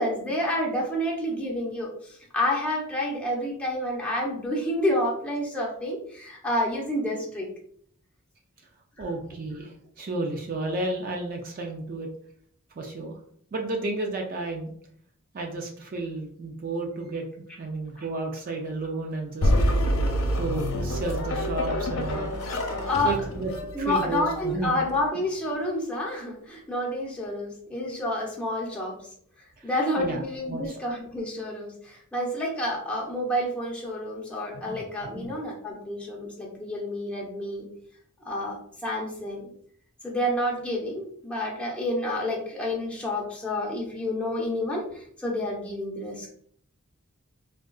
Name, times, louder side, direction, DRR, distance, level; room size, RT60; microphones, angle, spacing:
voice 1, 0.0-7.5 22.9-23.4 23.7-29.0 29.6-37.7 38.2-39.4 40.0-46.3, left 1 dB, 5° left, -4 dB, 0.7 m, -29 dB
voice 2, 9.0-12.1 12.8-13.2 13.5-14.7 15.3-17.3 17.6-19.5 20.4-22.3 23.0-23.5 23.8-24.8 29.6-29.7 30.0-30.6 34.5-35.3, right 2 dB, 45° right, 2 dB, 0.4 m, -32 dB
sound 1, 19.4-24.9, equal, 90° left, 0.6 m, -27 dB
3.6 x 2.3 x 2.3 m, 0.62 s
head